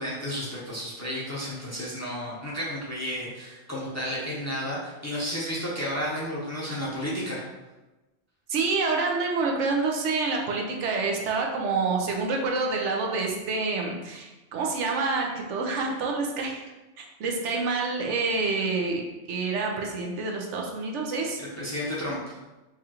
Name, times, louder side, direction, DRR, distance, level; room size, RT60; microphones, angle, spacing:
voice 1, 0.0-7.4 21.4-22.4, equal, 15° left, -6 dB, 0.6 m, -32 dB
voice 2, 8.5-16.6 17.0-21.4, right 3 dB, 85° right, 0 dB, 1.0 m, -27 dB
4.7 x 2.4 x 2.9 m, 1.1 s
omnidirectional pair, 1.2 m